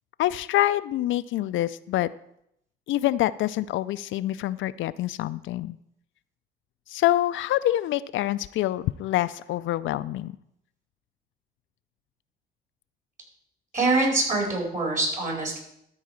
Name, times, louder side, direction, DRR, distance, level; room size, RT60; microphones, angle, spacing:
voice 1, 0.2-2.1 2.9-5.8 6.9-10.4, left 14 dB, 75° left, 14 dB, 0.4 m, -26 dB
voice 2, 13.7-15.6, right 2 dB, 40° right, -1 dB, 5.0 m, -24 dB
13.0 x 4.7 x 7.3 m, 0.76 s
cardioid pair, 90°, 20 cm